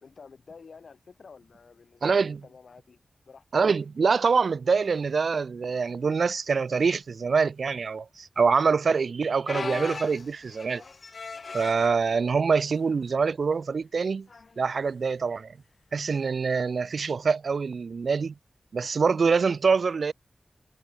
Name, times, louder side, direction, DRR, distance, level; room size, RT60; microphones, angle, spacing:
voice 1, 0.0-3.4, left 5 dB, 85° left, 2.6 m, -50 dB
voice 2, 2.0-2.4 3.5-10.8 11.5-14.3 14.6-15.5 15.9-18.3 18.7-20.1, right 5 dB, 85° right, 0.4 m, -25 dB
sound 1, 9.5-11.9 12.7-12.9 13.3-13.4 14.3-14.5 16.1-16.2, left 4 dB, 65° left, 0.4 m, -37 dB
wide cardioid pair, 95°, 0 cm